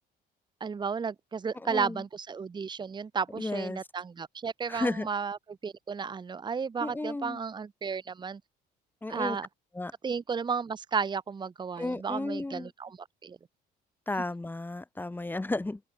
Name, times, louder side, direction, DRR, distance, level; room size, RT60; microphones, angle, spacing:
voice 1, 0.6-8.4 9.1-9.5 10.0-13.4, right 5 dB, 25° right, 1.3 m, -33 dB
voice 2, 1.7-2.0 3.4-3.8 4.7-5.1 6.8-7.4 9.0-9.4 9.8-9.9 11.8-12.7 14.1-15.8, left 2 dB, 10° left, 2.4 m, -33 dB
cardioid pair, 110°, 17 cm